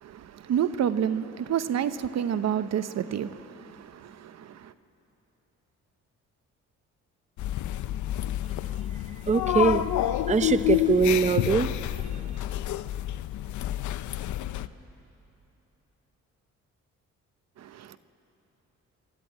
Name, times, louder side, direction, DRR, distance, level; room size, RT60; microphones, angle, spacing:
voice 1, 0.0-4.7 17.6-18.0, right 9 dB, 60° right, 0.8 m, -29 dB
sound 1, 7.4-14.7, left 13 dB, 75° left, 0.7 m, -29 dB
voice 2, 9.3-9.8 10.3-11.7, right 5 dB, 25° right, 0.7 m, -22 dB
27.5 x 13.0 x 9.1 m
cardioid pair, 90°, 30 cm